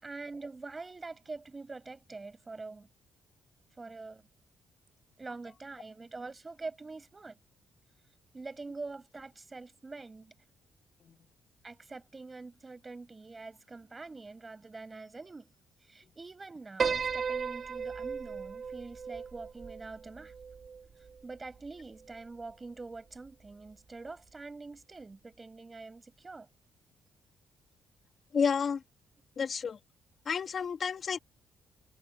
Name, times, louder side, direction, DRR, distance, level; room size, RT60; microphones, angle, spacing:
voice 1, 0.0-2.9 3.8-4.2 5.2-7.4 8.3-10.3 11.6-15.5 15.9-20.3 21.2-26.5, right 3 dB, 25° right, 6.4 m, -45 dB
Piano, 16.8-21.2, right 6 dB, 45° right, 3.0 m, -35 dB
voice 2, 28.3-28.8 29.4-29.8 30.3-31.2, left 6 dB, 50° left, 2.2 m, -30 dB
cardioid pair, 90°, 0 cm